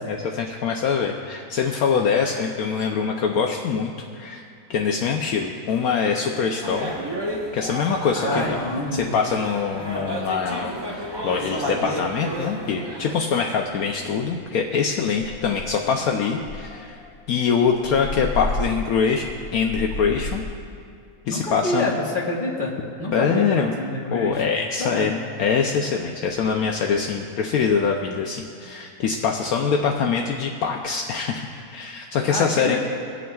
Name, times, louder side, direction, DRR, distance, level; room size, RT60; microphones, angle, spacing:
voice 1, 0.1-4.4 4.7-6.9 7.5-8.6 8.9-17.0 17.3-19.2 19.5-20.4 21.3-21.9 23.1-23.7 24.1-32.8, left 6 dB, 70° left, 1 dB, 1.1 m, -24 dB
sound 1, 6.6-13.1, equal, 20° right, 0.9 m, -31 dB
voice 2, 8.1-9.1 21.3-24.4 24.8-25.1 32.3-32.8, left 2 dB, 35° left, -3 dB, 1.6 m, -27 dB
sound 2, 13.7-13.8 14.2-14.5 14.8-14.9 15.2-15.9 16.4-20.6, left 2 dB, 90° left, 1.6 m, -32 dB
23.5 x 8.5 x 2.3 m, 2.3 s
omnidirectional pair, 1.6 m